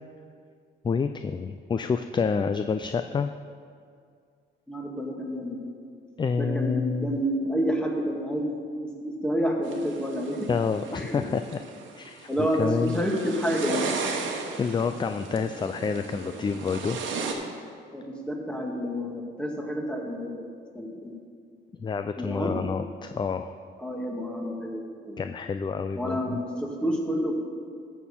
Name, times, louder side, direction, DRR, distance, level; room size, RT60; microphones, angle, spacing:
voice 1, 0.8-3.3 6.2-7.2 10.5-11.6 12.0-13.1 14.3-17.0 21.8-23.5 25.2-26.4, left 5 dB, 25° left, 8 dB, 0.3 m, -28 dB
voice 2, 4.7-5.7 6.3-8.5 8.8-10.5 10.9-11.2 12.3-14.0 17.9-21.2 22.2-22.6 23.8-25.2 26.0-27.3, equal, 5° left, -1 dB, 1.8 m, -29 dB
sound 1, 9.6-17.3, right 4 dB, 75° right, 1.2 m, -35 dB
12.5 x 4.3 x 7.1 m, 2.2 s
cardioid pair, 90°, 20 cm